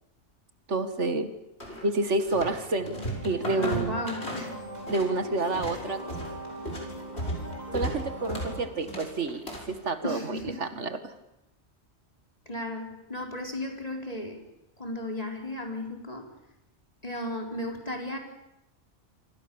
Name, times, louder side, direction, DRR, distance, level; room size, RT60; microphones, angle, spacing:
voice 1, 0.7-1.3 1.8-4.0 4.9-6.0 7.7-11.1, right 2 dB, 75° right, 9 dB, 2.1 m, -29 dB
sound 1, 1.6-2.6 2.9-5.1 5.4-9.8, equal, 60° left, 6.4 m, -35 dB
sound 2, 2.8-8.7, right 1 dB, 35° right, 5.4 m, -40 dB
voice 2, 3.6-4.6 10.0-10.7 12.5-14.4 14.8-16.3 17.0-18.2, left 1 dB, 30° left, 2 dB, 4.5 m, -35 dB
27.0 x 26.0 x 7.1 m, 0.89 s
omnidirectional pair, 1.2 m